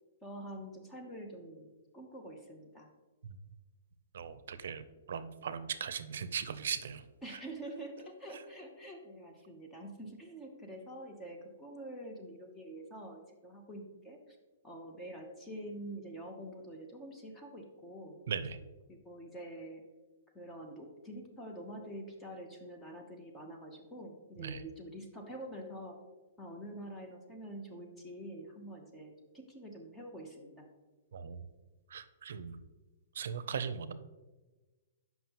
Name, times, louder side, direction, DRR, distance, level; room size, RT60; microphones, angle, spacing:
voice 1, 0.2-1.7 1.9-2.9 7.2-14.2 14.6-18.2 18.9-19.8 20.3-25.9 26.4-30.7, right 1 dB, 10° left, 2 dB, 0.7 m, -46 dB
voice 2, 4.1-4.8 5.1-7.0 18.3-18.6 24.4-24.6 31.1-31.4 31.9-32.6 33.1-33.9, right 7 dB, 75° right, 13 dB, 0.5 m, -38 dB
7.3 x 5.6 x 2.9 m, 1.2 s
hypercardioid pair, 160°, 0 cm